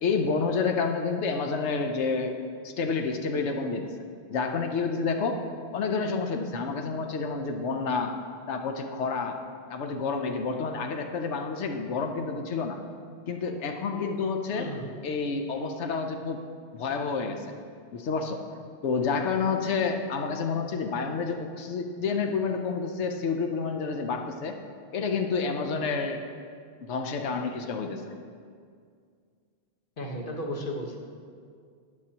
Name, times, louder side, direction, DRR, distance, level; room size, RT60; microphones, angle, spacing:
voice 1, 0.0-2.3 2.6-3.9 4.3-5.4 5.7-8.1 8.5-9.4 9.7-12.8 13.3-14.7 15.0-16.4 16.7-17.5 17.9-18.4 18.8-24.6 24.9-26.2 26.8-28.1, left 4 dB, 80° left, 4 dB, 1.1 m, -29 dB
voice 2, 14.5-14.9 30.0-31.0, equal, 50° left, 1 dB, 1.4 m, -34 dB
20.0 x 6.8 x 2.9 m, 2.2 s
omnidirectional pair, 1.2 m